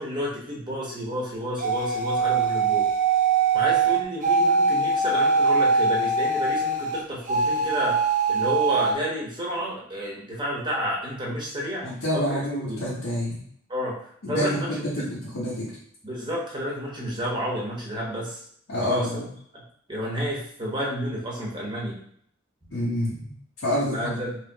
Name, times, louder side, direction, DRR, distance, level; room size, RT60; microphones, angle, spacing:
voice 1, 0.0-2.9 3.5-8.0 8.3-11.8 12.1-12.4 12.7-12.8 13.7-14.0 14.3-14.8 16.0-18.4 18.8-19.2 19.5-19.6 19.9-22.0 23.9-24.4, equal, 20° right, -4 dB, 1.1 m, -30 dB
sound 1, 1.6-7.0 7.3-8.9, right 4 dB, 40° right, 0.6 m, -22 dB
voice 2, 11.8-13.4 14.2-15.8 18.7-19.3 22.7-24.2, left 1 dB, 70° left, -7 dB, 1.0 m, -28 dB
3.2 x 3.0 x 3.5 m, 0.64 s
head